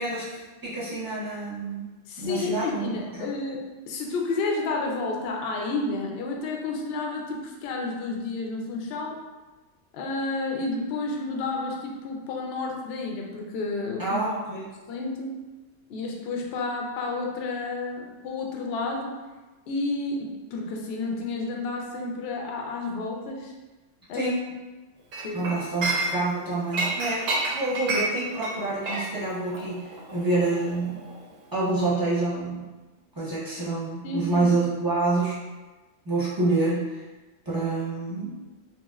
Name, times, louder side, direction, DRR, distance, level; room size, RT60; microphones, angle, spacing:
voice 1, 0.0-1.9 2.2-3.3 14.0-14.7 24.1-24.4 25.3-27.3 27.5-31.1 31.5-32.7 33.1-35.5 36.0-37.0 37.4-38.4, right 2 dB, 20° right, -10 dB, 0.6 m, -27 dB
voice 2, 2.1-9.2 9.9-14.2 14.9-15.4 15.9-19.2 19.7-23.5 24.1-24.3 25.2-25.5 34.0-34.5, left 3 dB, 65° left, 1 dB, 0.7 m, -31 dB
Chink clink, 25.1-26.4 26.7-31.3 31.6-31.9, right 2 dB, 80° right, 1.0 m, -30 dB
2.9 x 2.8 x 2.3 m, 1.2 s
omnidirectional pair, 1.3 m